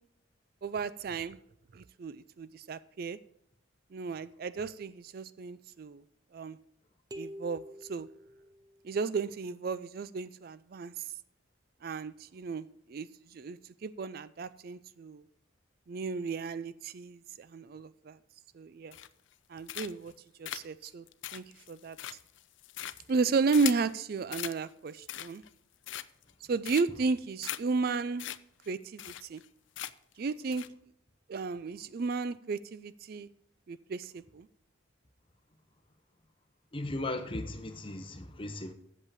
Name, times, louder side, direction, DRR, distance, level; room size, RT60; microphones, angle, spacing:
voice 1, 0.6-1.4 1.7-3.2 3.9-6.0 6.3-6.6 7.1-7.6 7.9-8.1 8.8-11.1 11.8-15.2 15.9-18.2 18.5-19.0 19.5-20.1 20.4-21.1 21.3-22.0 23.1-25.4 26.5-28.3 28.7-29.4 30.2-30.6 31.3-33.3 33.7-34.5, right 4 dB, 50° right, 0.4 m, -34 dB
sound 1, 7.1-9.0, equal, 20° right, 0.8 m, -47 dB
sound 2, 18.9-19.3 19.7-20.1 20.4-23.9 24.3-24.6 24.9-25.5 25.8-26.3 26.6-27.1 27.4-27.6 27.9-28.0 28.2-28.4 28.6-28.7 29.0-29.5 29.7-30.1 30.5-30.7, left 13 dB, 70° left, 0.5 m, -39 dB
voice 2, 36.7-38.7, left 2 dB, 25° left, 0.9 m, -37 dB
8.2 x 7.4 x 6.7 m
head